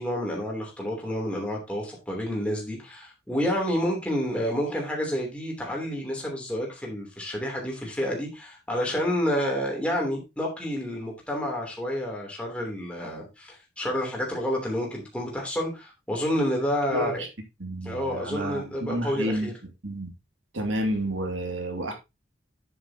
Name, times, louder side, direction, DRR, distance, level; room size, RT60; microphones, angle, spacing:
voice 1, 0.0-17.1 17.8-19.5, equal, 5° left, 3.1 m, -29 dB
voice 2, 16.9-17.3 17.6-19.5 19.8-20.1 20.5-21.9, right 1 dB, 80° right, 2.4 m, -30 dB
9.4 x 8.0 x 2.9 m
head